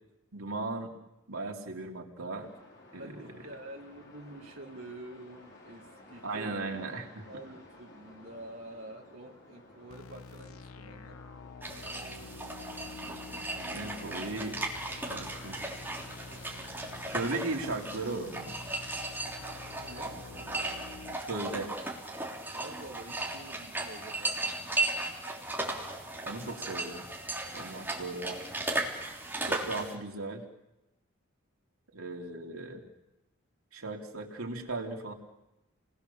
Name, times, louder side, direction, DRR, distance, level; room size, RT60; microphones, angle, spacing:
voice 1, 0.3-0.9 1.3-2.5 2.9-3.1 6.2-7.3 13.7-14.6 14.9-15.6 17.1-18.6 21.2-21.7 26.2-27.0 27.5-28.4 29.4-30.4 31.9-32.8 33.7-35.1, right 2 dB, 80° right, 1 dB, 3.1 m, -37 dB
sound 1, 2.4-18.1, left 1 dB, 50° left, 4.5 m, -55 dB
voice 2, 3.0-6.6 7.2-11.2 19.8-20.2 22.5-24.8, right 1 dB, 65° right, -3 dB, 2.7 m, -47 dB
sound 2, 9.9-21.2, left 4 dB, 75° left, 0.8 m, -48 dB
sound 3, 11.6-29.9, right 2 dB, 10° right, 3.4 m, -36 dB
30.0 x 20.5 x 7.0 m, 0.95 s
head